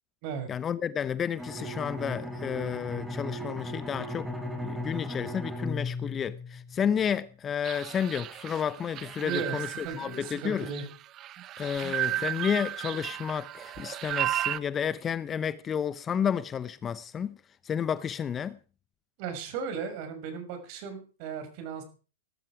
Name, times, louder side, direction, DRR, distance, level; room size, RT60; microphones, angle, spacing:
voice 1, 0.5-4.3 4.6-10.7 11.6-18.6, left 8 dB, 20° left, 0.7 m, -31 dB
Bowed string instrument, 1.4-7.0, left 1 dB, 5° right, 3.9 m, -36 dB
sound 1, 7.6-14.6, right 13 dB, 30° right, 0.8 m, -34 dB
voice 2, 9.2-9.6 9.8-10.8 11.8-11.9 19.2-21.8, right 6 dB, 45° right, 5.7 m, -36 dB
18.0 x 13.0 x 4.8 m
hypercardioid pair, 120°, 0 cm